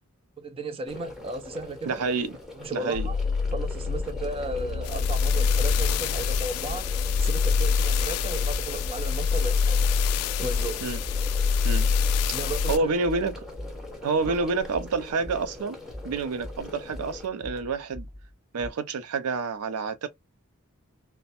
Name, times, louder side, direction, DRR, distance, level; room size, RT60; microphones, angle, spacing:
voice 1, 0.4-2.0 2.6-3.2 3.5-6.9 7.2-9.8 10.4-10.8 12.3-12.9 14.3-14.4, right 2 dB, 25° right, 0.4 m, -35 dB
sound 1, 0.8-17.3, left 2 dB, ahead, 0.7 m, -42 dB
voice 2, 1.9-2.4 2.7-3.1 10.8-11.0 11.6-11.9 12.7-13.3 14.0-15.8 16.0-18.1 18.5-20.1, right 4 dB, 85° right, 0.4 m, -28 dB
sound 2, 2.9-12.8, left 5 dB, 85° left, 0.3 m, -25 dB
sound 3, 3.9-15.6 15.9-18.7, left 1 dB, 55° right, 1.2 m, -42 dB
3.1 x 2.1 x 2.8 m
head